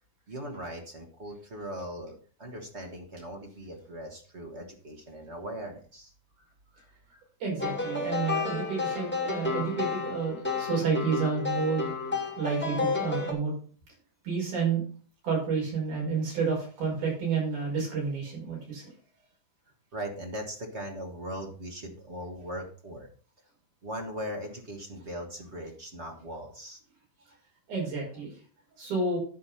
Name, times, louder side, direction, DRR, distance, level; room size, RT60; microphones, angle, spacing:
voice 1, 0.3-6.1 19.9-23.1 23.8-26.8, equal, 35° right, 2 dB, 1.0 m, -39 dB
voice 2, 7.4-13.5 14.2-14.8 15.2-18.9 27.7-28.4 28.8-29.2, right 5 dB, 70° right, -3 dB, 6.7 m, -30 dB
sound 1, 7.6-13.3, left 4 dB, 5° left, 1.7 m, -31 dB
11.5 x 4.9 x 5.8 m, 0.42 s
omnidirectional pair, 3.7 m